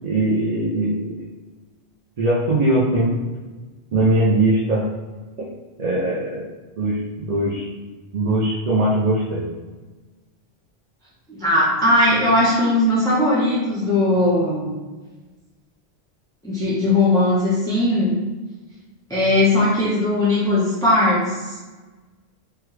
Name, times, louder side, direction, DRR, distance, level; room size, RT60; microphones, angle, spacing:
voice 1, 0.0-1.1 2.2-3.1 3.9-4.8 5.8-6.4 6.8-7.6 8.1-9.4, right 1 dB, 45° right, -7 dB, 0.6 m, -20 dB
voice 2, 11.3-14.7 16.4-18.1 19.1-21.6, left 1 dB, 5° left, -8 dB, 0.4 m, -19 dB
3.6 x 2.2 x 3.1 m, 1.3 s
omnidirectional pair, 1.1 m